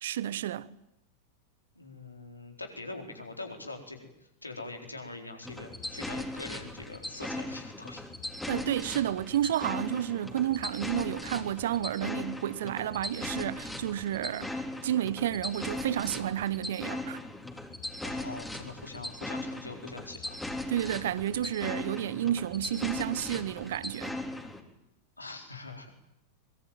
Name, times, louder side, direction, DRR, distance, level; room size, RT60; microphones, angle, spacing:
voice 1, 0.0-0.7 8.5-17.2 20.7-24.1, right 11 dB, 60° right, 1.0 m, -31 dB
voice 2, 1.8-4.1 4.4-8.0 18.0-20.4 25.2-25.9, left 2 dB, 80° left, 4.2 m, -43 dB
sound 1, 5.4-24.6, left 1 dB, 5° left, 3.5 m, -38 dB
24.0 x 23.0 x 9.2 m
figure-of-eight pair, 90°, 0 cm